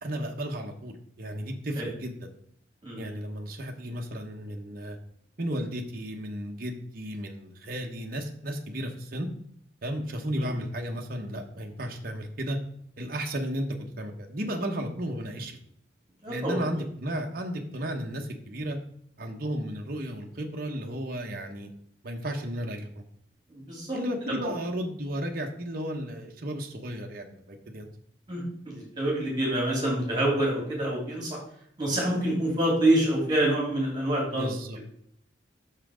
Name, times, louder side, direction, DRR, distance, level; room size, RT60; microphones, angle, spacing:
voice 1, 0.0-2.1 3.0-5.0 5.4-9.3 9.8-12.6 13.0-15.6 16.3-18.8 19.2-21.7 22.0-23.0 23.9-27.9 34.3-34.8, equal, 50° right, 2 dB, 1.0 m, -34 dB
voice 2, 2.8-3.2 10.4-10.5 16.2-16.6 23.5-24.0 28.3-31.4 31.8-34.5, right 1 dB, 25° right, -3 dB, 3.3 m, -27 dB
6.5 x 5.7 x 5.0 m, 0.68 s
head